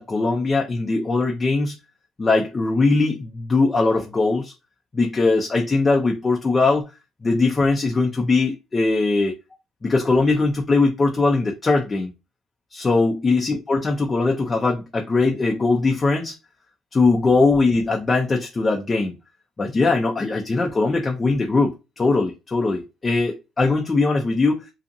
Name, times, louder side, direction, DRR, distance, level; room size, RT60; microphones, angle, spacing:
voice 1, 0.0-1.8 2.2-4.5 4.9-6.8 7.2-9.4 9.8-12.1 12.7-16.3 16.9-19.1 19.6-24.6, left 3 dB, 30° left, 0.5 m, -20 dB
2.6 x 2.4 x 2.6 m
supercardioid pair, 75°, 0 cm